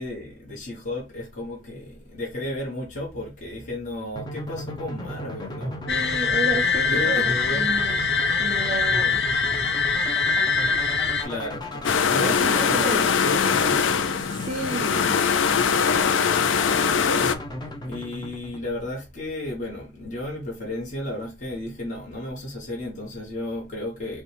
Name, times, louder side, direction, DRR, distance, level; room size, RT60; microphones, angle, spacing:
voice 1, 0.0-5.8 6.8-7.8 11.1-14.0 17.8-24.2, left 1 dB, 40° left, 1.2 m, -33 dB
sound 1, 4.2-19.1, left 1 dB, 20° left, 0.6 m, -35 dB
sound 2, 5.9-11.2, left 5 dB, 60° left, 0.8 m, -23 dB
voice 2, 5.9-8.0 8.4-9.2 12.2-13.0 14.3-15.2, right 2 dB, 35° right, 0.5 m, -31 dB
sound 3, 11.8-17.3, left 6 dB, 85° left, 0.4 m, -22 dB
5.4 x 2.3 x 3.3 m
head